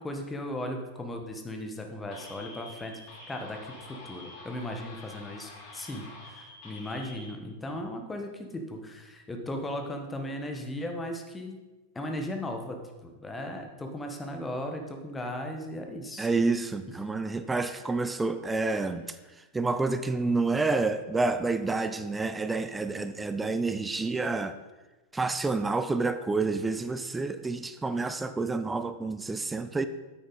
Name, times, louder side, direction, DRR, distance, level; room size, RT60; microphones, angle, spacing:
voice 1, 0.0-2.9 3.3-3.7 4.0-11.6 11.9-16.3, left 1 dB, 10° left, 4 dB, 1.3 m, -37 dB
sound 1, 2.1-7.3, left 2 dB, 40° left, 2.7 m, -47 dB
voice 2, 16.2-19.0 19.5-24.6 25.1-29.9, right 3 dB, 10° right, 11 dB, 0.5 m, -29 dB
9.5 x 8.5 x 4.1 m, 1.2 s
figure-of-eight pair, 90°, 0 cm